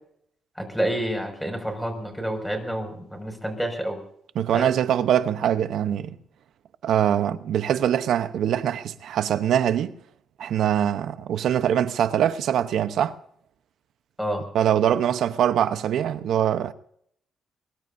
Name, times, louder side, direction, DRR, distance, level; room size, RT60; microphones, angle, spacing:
voice 1, 0.6-4.0 4.5-4.7 14.2-14.4, right 1 dB, ahead, 6.1 m, -29 dB
voice 2, 4.3-6.2 6.8-9.9 10.4-13.2 14.5-16.7, right 10 dB, 75° right, 0.9 m, -23 dB
23.5 x 22.0 x 2.7 m
cardioid pair, 90°, 0 cm